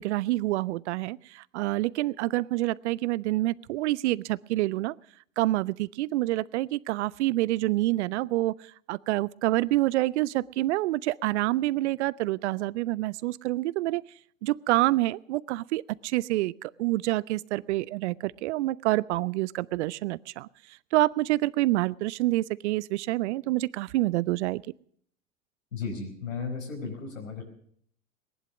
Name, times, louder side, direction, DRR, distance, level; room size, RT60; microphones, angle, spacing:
voice 1, 0.0-4.9 5.4-14.0 14.4-24.6, right 17 dB, 60° right, 23 dB, 0.6 m, -27 dB
voice 2, 25.7-27.4, left 5 dB, 85° left, 0 dB, 4.8 m, -35 dB
19.0 x 11.0 x 6.2 m, 0.65 s
hypercardioid pair, 90°, 39 cm